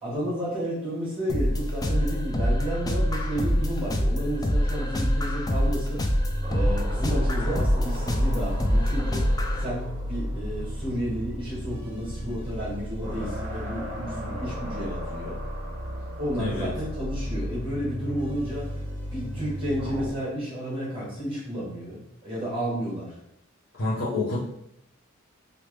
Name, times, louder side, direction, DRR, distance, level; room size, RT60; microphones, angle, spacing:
voice 1, 0.0-6.0 6.5-9.3 9.6-15.4 16.2-18.7 19.1-23.1, equal, 25° right, -7 dB, 1.4 m, -32 dB
sound 1, 1.3-9.6, equal, 20° left, 0.3 m, -25 dB
sound 2, 6.1-20.1, equal, 10° right, 1.1 m, -33 dB
voice 2, 16.4-16.7 23.8-24.4, left 2 dB, 65° left, -8 dB, 0.7 m, -28 dB
3.1 x 2.6 x 3.2 m, 0.78 s
head